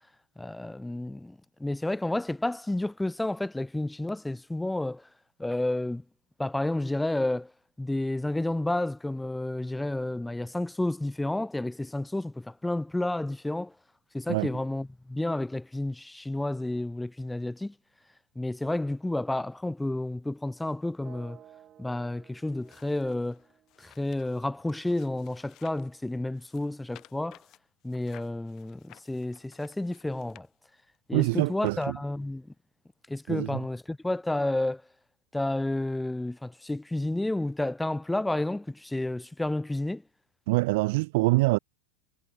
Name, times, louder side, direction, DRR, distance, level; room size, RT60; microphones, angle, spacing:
voice 1, 0.4-5.0 5.4-6.0 6.4-7.5 7.8-13.7 14.1-17.7 18.4-21.4 21.8-23.4 23.8-27.4 27.8-30.5 31.1-32.5 33.1-34.8 35.3-40.0, left 1 dB, 5° left, 0.5 m, -31 dB
sound 1, 21.0-25.0, right 10 dB, 35° right, 3.9 m, -56 dB
sound 2, 22.4-25.9 26.3-31.0 31.7-31.8, left 15 dB, 40° left, 4.2 m, -57 dB
voice 2, 31.1-32.0 33.3-33.6 40.5-41.6, right 23 dB, 65° right, 0.3 m, -25 dB
hypercardioid pair, 115°, 0 cm